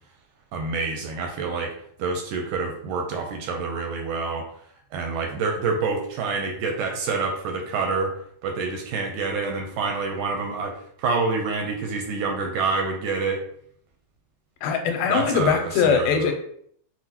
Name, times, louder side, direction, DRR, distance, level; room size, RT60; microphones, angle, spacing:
voice 1, 0.5-1.7 2.0-4.4 4.9-8.2 8.4-13.4 15.1-16.3, right 4 dB, 80° right, 2 dB, 1.9 m, -27 dB
voice 2, 14.6-16.3, left 6 dB, 85° left, 4 dB, 2.1 m, -21 dB
6.2 x 2.1 x 2.8 m, 0.64 s
omnidirectional pair, 3.8 m